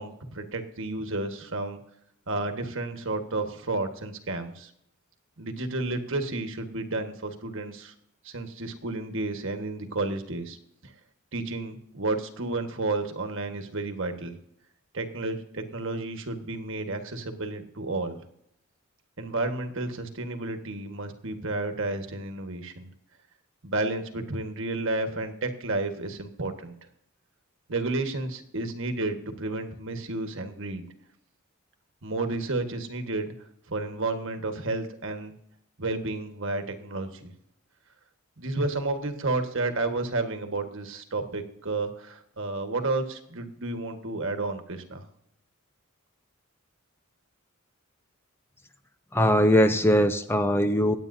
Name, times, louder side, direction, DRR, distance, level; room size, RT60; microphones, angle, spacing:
voice 1, 0.0-1.8 2.3-4.7 5.4-7.9 8.2-10.6 11.3-14.4 14.9-18.2 19.2-22.9 23.6-26.7 27.7-30.8 32.0-33.3 33.7-35.3 35.8-37.3 38.4-45.1, right 2 dB, 60° right, 6 dB, 1.5 m, -31 dB
voice 2, 49.1-51.0, equal, 10° left, 9 dB, 0.5 m, -21 dB
25.0 x 8.9 x 2.7 m, 0.74 s
head